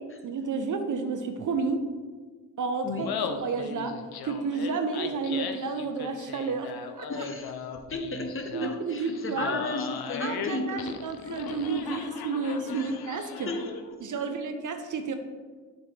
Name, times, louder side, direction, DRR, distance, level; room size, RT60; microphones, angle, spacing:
voice 1, 0.2-1.8 2.6-3.1 3.4-3.9 4.2-7.2 8.5-9.6 10.2-13.5 14.0-15.1, right 4 dB, 45° right, 7 dB, 0.7 m, -31 dB
Laughter, 2.9-13.9, left 6 dB, 60° left, 0.7 m, -38 dB
voice 2, 7.1-10.9 12.7-12.9 13.5-13.7 14.1-14.2, left 2 dB, 30° left, 5 dB, 0.9 m, -34 dB
6.7 x 4.4 x 3.2 m, 1.5 s
supercardioid pair, 50°, 42 cm